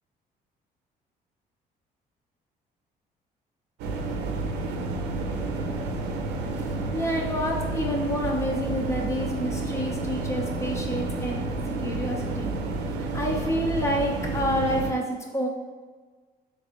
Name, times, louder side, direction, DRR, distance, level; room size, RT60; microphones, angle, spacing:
sound 1, 3.8-14.9, right 2 dB, 90° right, 0.5 m, -30 dB
voice 1, 6.9-11.4 11.8-12.5 13.0-15.5, equal, 15° left, 0 dB, 0.7 m, -28 dB
4.1 x 3.3 x 2.9 m, 1.4 s
cardioid pair, 110°, 17 cm